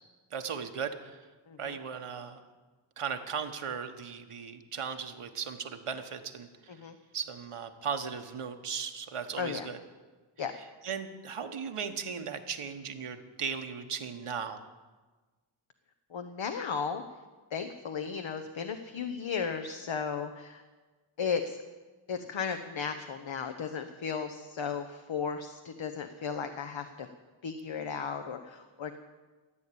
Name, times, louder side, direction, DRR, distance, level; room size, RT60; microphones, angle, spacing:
voice 1, 0.3-1.2 1.6-2.4 3.0-6.5 7.1-9.8 10.8-14.6, right 6 dB, 85° right, 6 dB, 1.2 m, -37 dB
voice 2, 1.5-1.8 6.7-6.9 9.4-9.7 10.4-10.5 16.1-17.0 17.5-20.6 21.2-21.6 22.1-27.1 27.4-29.0, left 6 dB, 65° left, 7 dB, 0.9 m, -35 dB
14.0 x 8.6 x 8.5 m, 1.3 s
wide cardioid pair, 75°, 50 cm